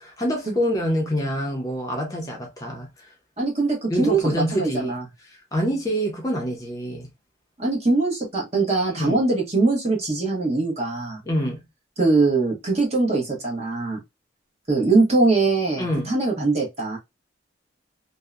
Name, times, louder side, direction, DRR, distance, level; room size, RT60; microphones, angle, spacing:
voice 1, 0.0-3.1 3.9-5.0 5.2-7.1 9.0-9.2 11.3-11.6 15.8-16.1, equal, 20° left, 0.5 m, -26 dB
voice 2, 3.4-5.0 7.6-11.2 12.0-14.0 14.7-17.0, right 3 dB, 35° right, 0.8 m, -22 dB
2.7 x 2.0 x 2.3 m
head